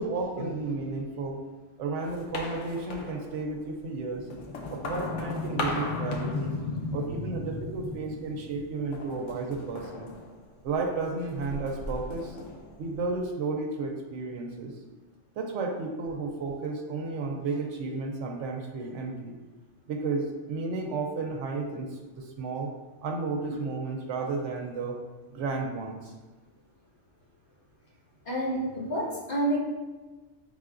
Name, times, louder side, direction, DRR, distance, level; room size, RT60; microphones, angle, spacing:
voice 1, 0.0-1.4 1.8-4.3 4.7-6.5 6.9-10.1 10.6-12.4 12.8-14.8 15.4-19.4 19.9-22.7 23.0-25.0 25.3-26.1, right 3 dB, 85° right, 2 dB, 1.0 m, -33 dB
sound 1, 2.0-3.6 4.1-7.1 7.5-8.1 8.9-10.8 11.2-13.2, left 2 dB, 85° left, 1.0 m, -38 dB
voice 2, 4.6-7.5 28.2-29.6, left 1 dB, 50° left, -6 dB, 1.4 m, -31 dB
5.6 x 3.6 x 2.5 m, 1.2 s
omnidirectional pair, 1.2 m